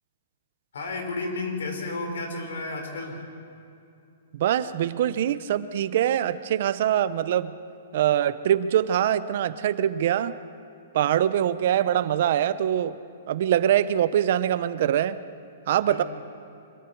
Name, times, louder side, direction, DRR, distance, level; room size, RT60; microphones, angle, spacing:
voice 1, 0.7-3.2 15.9-16.0, left 3 dB, 85° left, 3 dB, 4.9 m, -32 dB
voice 2, 4.3-7.5 7.9-10.4 10.9-13.0 13.3-15.2 15.7-16.0, right 10 dB, 50° right, 14 dB, 0.7 m, -23 dB
25.0 x 22.5 x 4.6 m, 2.6 s
hypercardioid pair, 170°, 0 cm